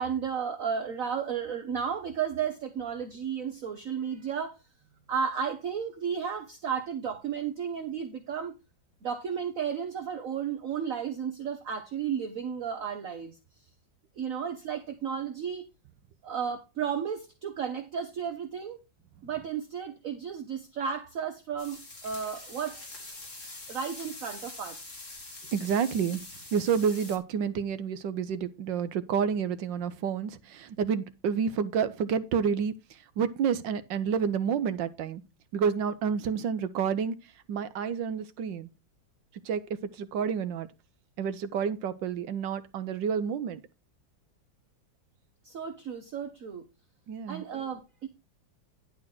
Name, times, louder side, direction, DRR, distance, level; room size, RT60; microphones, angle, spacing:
voice 1, 0.0-4.6 5.1-8.5 9.0-13.4 14.2-15.6 16.2-18.8 19.2-23.2 23.7-24.9 45.4-46.6 47.3-48.1, right 7 dB, 50° right, 1.3 m, -33 dB
sound 1, 21.6-27.2, left 2 dB, 40° left, 3.2 m, -44 dB
voice 2, 25.5-26.2 26.5-32.8 33.2-35.2 35.5-37.1 37.5-38.7 39.4-40.7 41.2-43.6 47.1-47.4, right 7 dB, 70° right, 1.5 m, -29 dB
11.0 x 4.2 x 6.0 m
omnidirectional pair, 2.2 m